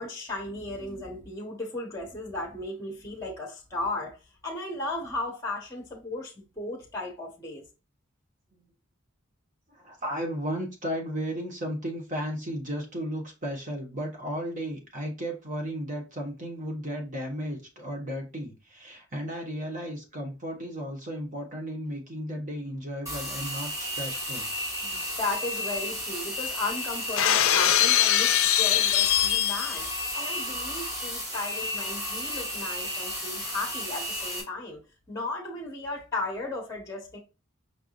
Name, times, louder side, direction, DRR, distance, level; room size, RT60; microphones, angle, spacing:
voice 1, 0.0-4.2 4.4-7.6 24.8-34.8 35.1-37.2, left 2 dB, 15° left, 1.0 m, -35 dB
voice 2, 9.7-24.5, equal, 35° right, 1.4 m, -34 dB
sound 1, 23.1-34.4, left 1 dB, 15° right, 1.6 m, -33 dB
Shatter, 27.2-29.9, left 12 dB, 75° left, 0.5 m, -22 dB
5.5 x 3.5 x 2.4 m
head